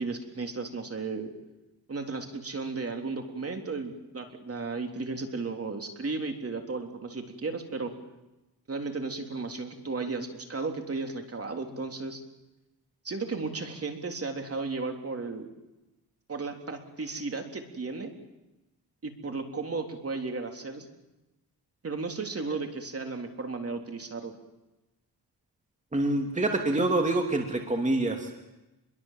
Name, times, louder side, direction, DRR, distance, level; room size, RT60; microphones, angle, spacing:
voice 1, 0.0-1.3 1.9-7.9 8.7-12.2 13.0-15.5 16.3-18.1 19.0-20.9 21.8-24.3, right 3 dB, 35° right, 4 dB, 3.5 m, -34 dB
voice 2, 25.9-28.4, right 2 dB, 20° right, 3 dB, 2.9 m, -26 dB
28.5 x 22.5 x 7.6 m, 0.99 s
cardioid pair, 115°, 38 cm